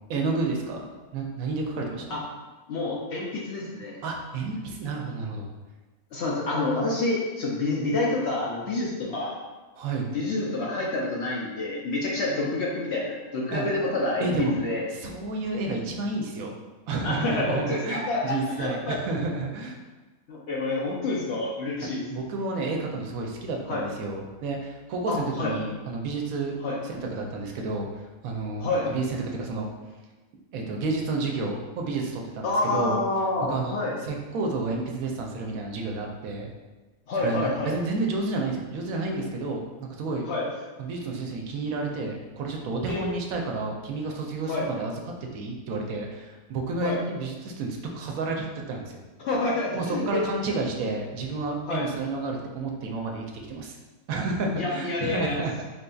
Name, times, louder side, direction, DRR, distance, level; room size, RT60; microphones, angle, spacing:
voice 1, 0.1-0.8 1.1-2.2 4.0-5.5 9.8-10.1 13.5-13.7 14.2-14.5 14.9-16.5 16.9-19.8 21.8-26.5 26.8-27.9 28.2-29.7 30.5-33.0 33.5-33.7 34.0-36.5 37.2-40.3 40.8-44.9 45.2-49.0 49.7-53.8 54.1-55.5, right 3 dB, 80° right, 1 dB, 1.0 m, -30 dB
voice 2, 2.7-4.0 6.1-9.4 10.1-14.8 17.0-19.0 20.3-22.0 23.7-23.9 25.1-25.5 26.6-26.8 28.6-28.9 32.4-33.9 37.1-37.8 40.3-40.5 42.9-43.0 44.5-44.7 46.8-47.0 49.2-50.2 51.7-51.9 54.5-55.4, left 2 dB, 65° left, -3 dB, 0.7 m, -28 dB
4.2 x 2.6 x 2.3 m, 1.2 s
omnidirectional pair, 1.5 m